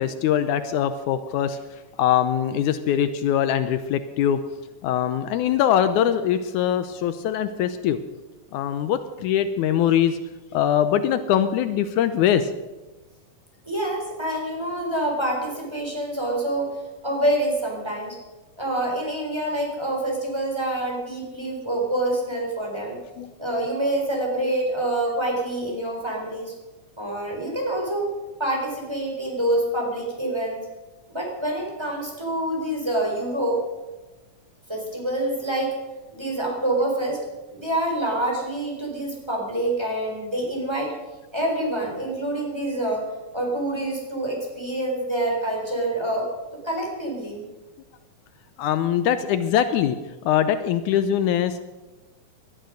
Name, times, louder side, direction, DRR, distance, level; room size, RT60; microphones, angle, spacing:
voice 1, 0.0-1.6 2.0-4.4 4.8-8.0 8.5-10.2 10.5-12.5 23.2-23.3 48.6-50.0 50.3-51.6, left 10 dB, 80° left, 11 dB, 2.1 m, -22 dB
voice 2, 13.6-16.8 17.0-18.2 18.6-23.0 23.4-26.5 27.0-28.1 28.4-30.6 31.1-33.6 34.7-35.8 36.1-37.2 37.5-40.9 41.3-43.1 43.3-46.3 46.6-47.5, right 1 dB, 10° right, -1 dB, 4.0 m, -26 dB
19.0 x 12.0 x 6.4 m, 1.1 s
omnidirectional pair, 3.6 m